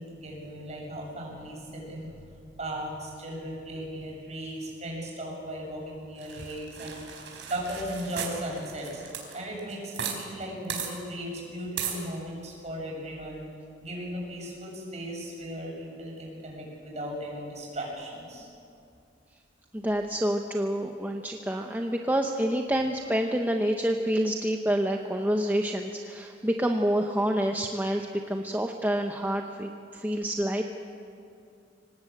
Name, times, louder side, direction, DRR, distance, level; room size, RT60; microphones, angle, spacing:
voice 1, 0.0-2.2 2.6-7.0 7.5-9.0 9.3-13.4 13.8-18.5, equal, 40° right, -2 dB, 7.6 m, -37 dB
sound 1, 6.2-10.2 10.4-10.5 10.7-10.9 11.8-12.0, right 8 dB, 80° right, 4.3 m, -36 dB
voice 2, 19.7-30.6, equal, 10° right, 3 dB, 0.9 m, -28 dB
25.0 x 18.5 x 8.7 m, 2.5 s
head